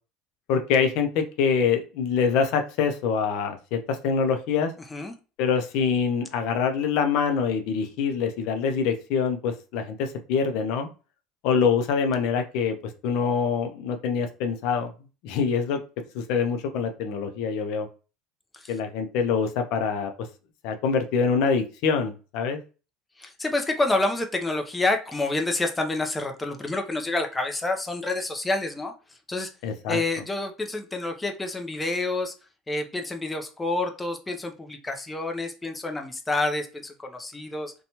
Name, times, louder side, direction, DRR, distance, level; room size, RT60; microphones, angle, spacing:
voice 1, 0.5-4.7 5.4-10.9 11.4-12.8 13.0-14.9 15.2-15.8 16.1-17.9 18.7-20.1 20.6-22.6 29.6-30.0, left 6 dB, 70° left, 6 dB, 0.5 m, -25 dB
voice 2, 23.2-28.9 29.3-29.5 29.9-32.3 32.7-37.7, left 2 dB, 15° left, 4 dB, 0.5 m, -28 dB
2.7 x 2.2 x 2.8 m, 0.34 s
supercardioid pair, 100°, 0 cm